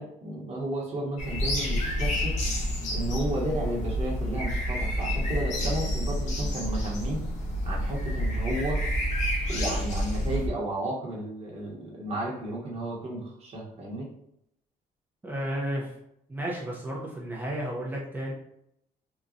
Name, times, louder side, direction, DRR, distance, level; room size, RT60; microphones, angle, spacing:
voice 1, 0.0-2.4 2.9-7.2 7.6-8.8 9.5-14.1, right 1 dB, 40° right, -4 dB, 0.9 m, -33 dB
sound 1, 1.2-10.5, equal, 50° left, 0.6 m, -29 dB
voice 2, 15.2-15.9 16.3-18.3, right 1 dB, 10° right, -4 dB, 0.4 m, -32 dB
3.8 x 2.1 x 2.5 m, 0.76 s
cardioid pair, 160°, 16 cm